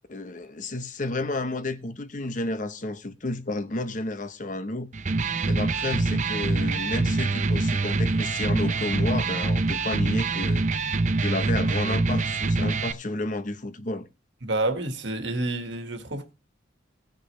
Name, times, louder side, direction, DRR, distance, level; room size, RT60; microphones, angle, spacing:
voice 1, 0.1-4.9 5.4-10.6 11.2-14.1, left 2 dB, 40° left, 0.8 m, -31 dB
Electric guitar, 4.9-12.9, right 3 dB, 40° right, 0.6 m, -25 dB
voice 2, 14.4-16.3, right 2 dB, 70° right, 1.6 m, -29 dB
18.0 x 6.5 x 3.2 m
head